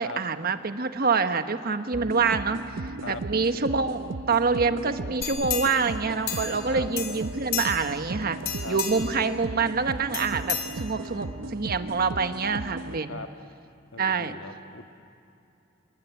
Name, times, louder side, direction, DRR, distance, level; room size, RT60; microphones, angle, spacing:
voice 1, 0.0-8.4 8.7-13.2 14.0-14.3, right 4 dB, 50° right, 9 dB, 1.2 m, -26 dB
sound 1, 1.9-13.0, right 3 dB, 75° right, 0.7 m, -36 dB
sound 2, 5.2-6.7 7.0-8.0 8.4-9.2 10.1-11.2 11.7-11.8, left 8 dB, 55° left, 3.5 m, -33 dB
voice 2, 10.8-11.8 13.1-13.3 13.9-14.9, left 3 dB, 80° left, 6 dB, 1.6 m, -40 dB
27.5 x 22.0 x 9.4 m, 2.8 s
head